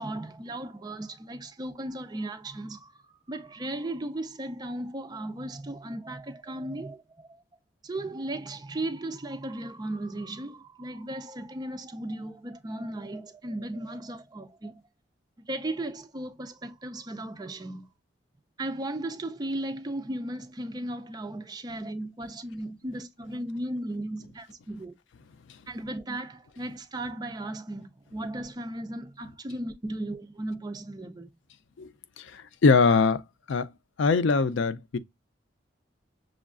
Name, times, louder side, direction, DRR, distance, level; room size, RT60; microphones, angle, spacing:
voice 1, 0.0-2.9 3.3-7.3 7.8-14.8 15.5-17.9 18.6-24.9 25.7-31.3, right 1 dB, 20° right, 0.4 m, -36 dB
voice 2, 32.2-33.2 33.5-33.7 34.0-35.0, left 4 dB, 85° left, 0.4 m, -22 dB
6.2 x 2.3 x 2.4 m
head